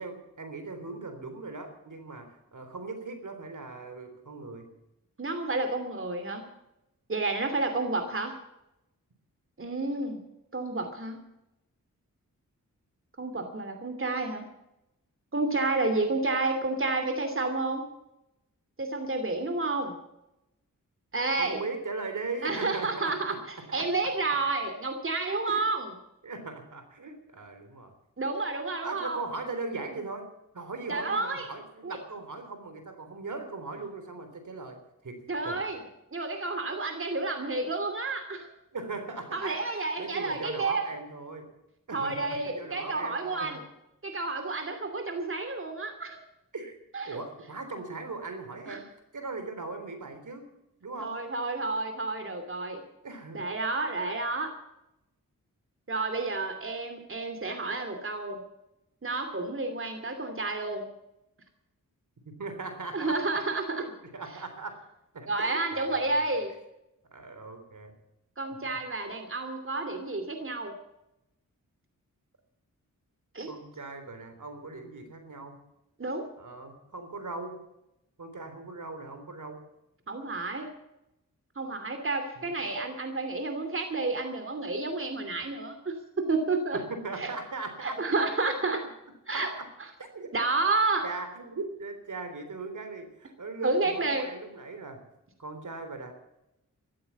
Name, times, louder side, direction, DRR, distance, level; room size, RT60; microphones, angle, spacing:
voice 1, 0.0-4.7 21.4-23.9 25.5-25.7 26.2-27.9 28.8-30.3 30.5-34.8 35.0-35.6 38.7-41.5 41.9-43.6 46.5-46.7 47.0-48.9 49.1-50.5 50.8-51.2 53.0-53.5 62.4-63.3 63.8-64.8 65.1-66.3 67.1-67.9 73.5-75.6 76.4-77.6 78.2-79.6 82.4-82.6 86.7-88.6 89.3-89.7 90.0-90.3 91.0-95.0 95.4-96.1, right 3 dB, 65° right, 7 dB, 3.7 m, -39 dB
voice 2, 5.2-6.4 7.1-8.4 9.6-10.2 10.5-11.2 13.2-14.5 15.3-17.8 18.8-20.0 21.1-21.6 22.4-23.4 23.7-25.9 28.2-29.2 30.9-31.5 31.8-32.0 35.3-35.8 36.1-38.5 39.3-40.9 41.9-43.6 44.0-46.2 46.9-47.2 48.7-48.8 51.0-52.8 53.3-54.5 55.9-58.4 59.0-60.9 62.9-63.8 65.3-66.5 68.4-70.7 73.3-73.5 76.0-76.3 80.1-80.7 81.6-86.8 87.2-87.3 87.8-88.8 89.3-89.5 90.3-91.1 93.6-94.3, right 3 dB, 40° right, 6 dB, 2.7 m, -30 dB
14.5 x 13.0 x 7.1 m, 0.88 s
cardioid pair, 60°, 33 cm